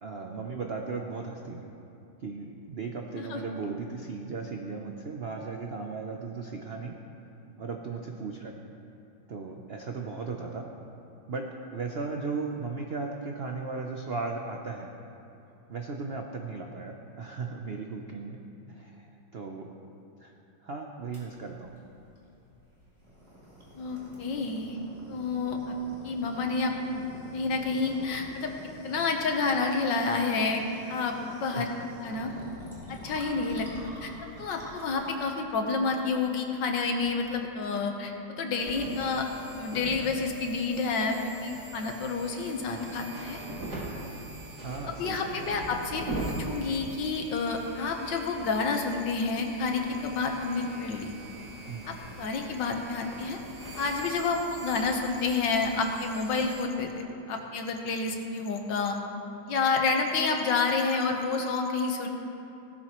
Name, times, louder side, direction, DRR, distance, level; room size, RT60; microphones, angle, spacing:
voice 1, 0.0-1.7 2.2-7.0 7.6-8.5 9.3-10.7 11.3-14.9 15.7-18.4 18.7-19.7 20.2-20.3 20.6-21.7 31.5-31.7 34.3-34.5 44.6-45.6 51.7-52.0, right 4 dB, 75° right, 2 dB, 0.5 m, -36 dB
sound 1, 21.1-37.4, equal, 30° right, 3.3 m, -48 dB
voice 2, 23.8-24.8 25.1-25.6 26.0-27.0 27.3-28.5 28.8-30.6 30.9-31.7 32.0-32.3 32.9-34.1 34.4-39.3 39.6-43.4 43.7-43.8 45.0-51.1 51.9-53.4 53.8-59.0 59.5-62.1, left 4 dB, 70° left, 3 dB, 1.7 m, -29 dB
sound 2, 38.6-56.6, right 1 dB, 55° right, 3.7 m, -41 dB
17.0 x 13.0 x 3.1 m, 2.9 s
omnidirectional pair, 2.1 m